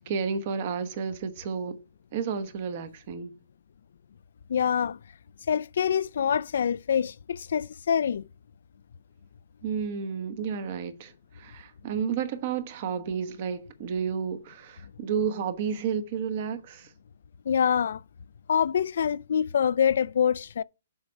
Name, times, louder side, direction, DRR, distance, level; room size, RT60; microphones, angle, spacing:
voice 1, 0.0-1.8 2.1-3.3 9.6-16.9, right 6 dB, 35° right, 1.0 m, -31 dB
voice 2, 4.5-5.0 5.5-8.3 17.5-18.0 18.5-20.6, left 8 dB, 60° left, 0.4 m, -25 dB
7.1 x 5.3 x 5.6 m
hypercardioid pair, 170°, 0 cm